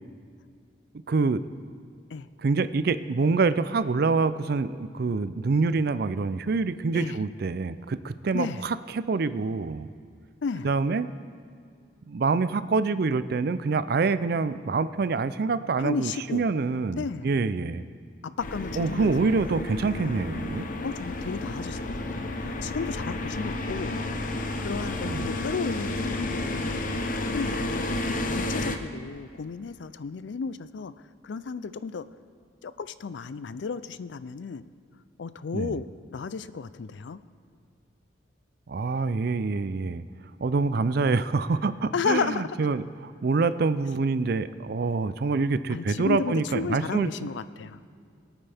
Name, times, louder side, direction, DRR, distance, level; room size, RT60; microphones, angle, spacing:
voice 1, 1.1-1.4 2.4-9.9 10.6-11.1 12.1-17.8 18.8-20.7 25.0-25.3 35.5-35.8 38.7-40.0 40.4-47.1, right 4 dB, 55° right, 14 dB, 0.4 m, -26 dB
voice 2, 15.8-16.4 16.9-17.3 18.2-19.3 20.8-24.0 24.6-26.9 27.2-28.0 28.3-30.9 31.2-32.1 32.6-34.6 35.2-35.9 36.1-37.2 41.9-42.6 45.7-47.8, left 5 dB, 70° left, 15 dB, 0.4 m, -33 dB
sound 1, 18.4-28.8, left 2 dB, 45° left, 0.8 m, -31 dB
22.5 x 9.0 x 3.5 m, 2.3 s
head